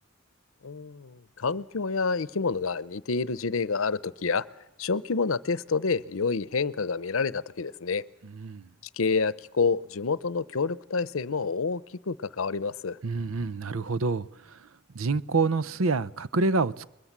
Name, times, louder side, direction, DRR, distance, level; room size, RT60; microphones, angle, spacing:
voice 1, 0.6-4.5 4.8-8.0 9.0-11.8 12.1-13.0, left 4 dB, 80° left, 0.7 m, -28 dB
voice 2, 8.2-8.7 13.0-14.7 14.9-16.9, right 3 dB, 85° right, 0.7 m, -27 dB
21.5 x 21.5 x 7.4 m
head